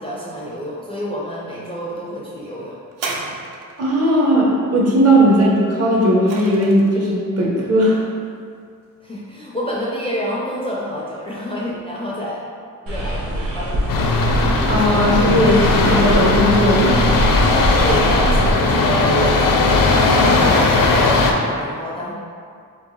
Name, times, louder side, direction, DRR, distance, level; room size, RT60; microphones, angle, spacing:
voice 1, 0.0-2.8 5.3-5.4 9.0-12.4 12.8-13.8 17.8-19.3 19.5-22.1, equal, 15° left, -6 dB, 0.4 m, -28 dB
sound 1, 2.9-4.0 5.7-7.0 7.9-8.0, right 3 dB, 75° right, 0.6 m, -31 dB
voice 2, 3.8-8.0 14.6-17.1, equal, 45° right, -5 dB, 0.8 m, -16 dB
sound 2, 12.9-18.5, right 1 dB, 90° right, 1.0 m, -23 dB
sound 3, 13.9-21.3, left 3 dB, 75° left, 0.5 m, -17 dB
4.5 x 2.8 x 3.1 m, 2.2 s
wide cardioid pair, 175°, 33 cm